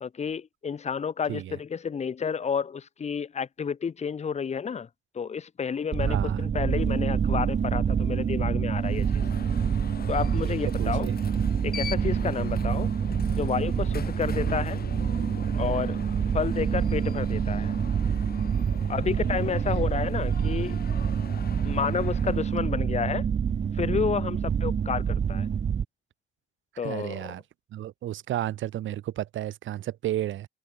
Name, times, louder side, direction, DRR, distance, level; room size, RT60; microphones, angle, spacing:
voice 1, 0.0-4.9 5.1-9.2 10.1-11.1 11.6-12.9 13.3-14.8 15.6-16.0 16.3-17.7 18.9-20.8 21.6-23.3 23.7-25.5 26.8-27.4, left 6 dB, 35° left, 1.0 m, -30 dB
sound 1, 5.9-25.8, right 7 dB, 35° right, 0.7 m, -27 dB
voice 2, 6.0-6.4 10.4-11.2 24.3-24.5 26.8-27.4 27.7-30.5, right 13 dB, 75° right, 2.4 m, -32 dB
Alarm, 8.8-22.7, left 7 dB, 50° left, 3.4 m, -42 dB
cardioid pair, 90°, 20 cm